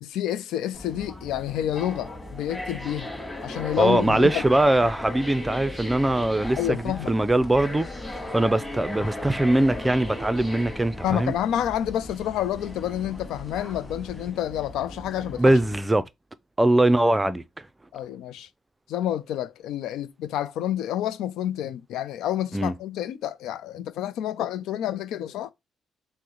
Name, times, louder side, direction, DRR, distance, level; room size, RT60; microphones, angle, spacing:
voice 1, 0.0-3.1 3.4-4.4 6.6-7.1 11.0-15.5 17.9-18.5 18.9-25.5, left 11 dB, 85° left, 0.4 m, -29 dB
sound 1, 0.7-15.8, left 1 dB, 10° left, 1.7 m, -37 dB
voice 2, 3.8-11.3 15.4-16.1 16.6-17.4 22.5-22.7, right 1 dB, 15° right, 0.4 m, -22 dB
sound 2, 3.9-14.3, left 2 dB, 30° left, 0.9 m, -45 dB
6.1 x 2.1 x 2.9 m
cardioid pair, 90°, 0 cm